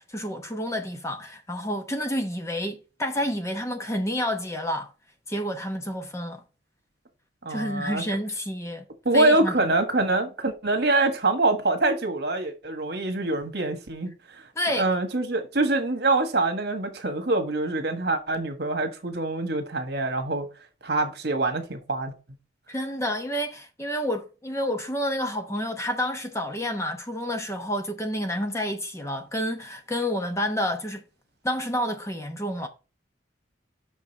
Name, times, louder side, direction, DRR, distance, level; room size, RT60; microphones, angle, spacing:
voice 1, 0.0-4.9 5.3-6.4 7.5-8.8 9.1-9.7 14.6-14.9 22.7-31.0 31.4-32.7, equal, 15° left, 0.9 m, -29 dB
voice 2, 7.4-8.0 9.0-14.1 14.7-20.5 20.8-22.1, right 2 dB, 55° right, 1.5 m, -25 dB
6.3 x 5.3 x 5.2 m
head